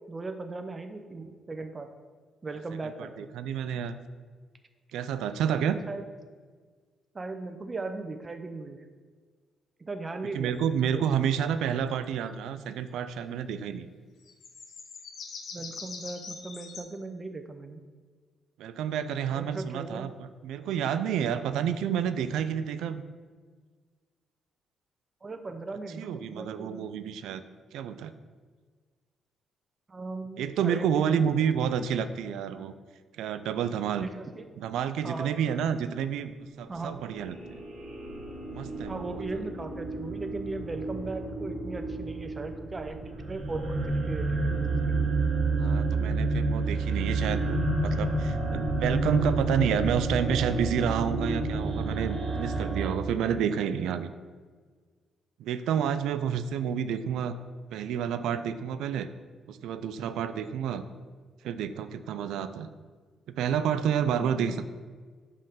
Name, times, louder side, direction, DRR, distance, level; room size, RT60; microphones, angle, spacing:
voice 1, 0.1-1.9 2.4-3.3 5.5-6.1 7.1-8.9 9.8-11.0 15.5-17.8 19.3-20.1 25.2-26.8 29.9-31.3 34.0-34.4 35.0-35.3 36.7-37.0 38.9-44.6 44.9-45.0 64.1-64.6, right 3 dB, 30° right, 7 dB, 0.5 m, -38 dB
voice 2, 3.0-4.0 4.9-5.8 10.3-13.9 18.6-23.0 26.0-27.4 27.7-28.1 30.4-32.7 33.2-34.1 34.6-36.3 36.6-37.6 38.5-39.2 45.6-54.1 55.4-57.4 57.7-59.1 59.5-60.8 61.4-62.7 63.3-64.6, right 8 dB, 85° right, 12 dB, 0.3 m, -29 dB
sound 1, 14.3-16.8, left 5 dB, 65° left, 0.9 m, -42 dB
sound 2, 36.7-52.9, right 2 dB, 60° right, 1.2 m, -30 dB
5.3 x 3.7 x 5.6 m, 1.5 s
cardioid pair, 90°, 0 cm